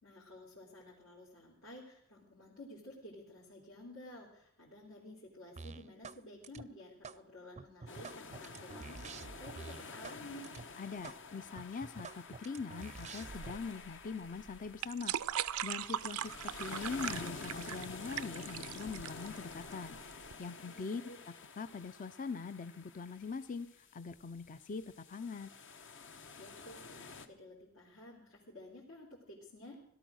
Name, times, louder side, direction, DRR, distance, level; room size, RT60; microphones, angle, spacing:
voice 1, 0.0-10.5 20.6-21.2 26.3-29.8, left 1 dB, 75° left, -6 dB, 3.4 m, -53 dB
sound 1, 5.6-6.2 6.4-7.2 7.6-10.2 10.4-10.6 11.0-11.2 11.5-13.5, right 4 dB, 30° right, 0.5 m, -48 dB
sound 2, 7.9-27.3, left 4 dB, 60° left, 1.2 m, -50 dB
voice 2, 10.8-15.2 15.6-20.0 20.4-25.5, left 5 dB, 40° left, 12 dB, 0.5 m, -43 dB
sound 3, 13.3-20.3, right 10 dB, 90° right, 0.5 m, -40 dB
17.5 x 12.5 x 6.3 m, 0.73 s
head